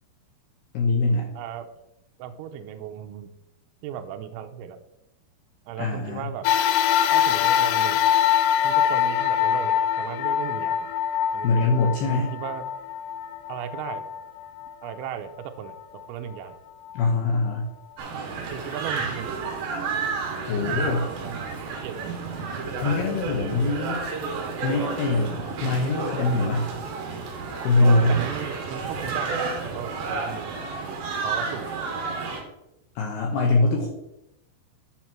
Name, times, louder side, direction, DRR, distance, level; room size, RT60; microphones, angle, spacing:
voice 1, 0.7-1.3 5.8-6.3 11.4-12.3 16.9-17.7 20.5-21.1 22.8-24.0 24.6-26.7 27.6-28.2 33.0-33.9, left 3 dB, 75° left, 0 dB, 2.4 m, -23 dB
voice 2, 1.4-1.7 2.2-3.3 3.8-4.8 5.7-6.5 7.1-8.0 8.6-10.9 11.3-11.7 12.1-12.7 13.5-14.0 14.8-16.6 18.3-19.3 21.2-21.6 21.8-22.2 28.1-30.6 31.2-32.0, right 9 dB, 85° right, 6 dB, 2.9 m, -36 dB
sound 1, 6.4-15.1 15.7-15.8 16.9-17.0, left 9 dB, 90° left, 3.3 m, -24 dB
sound 2, 18.0-32.4, right 4 dB, 60° right, 2.8 m, -31 dB
10.0 x 6.0 x 4.4 m, 0.88 s
omnidirectional pair, 5.8 m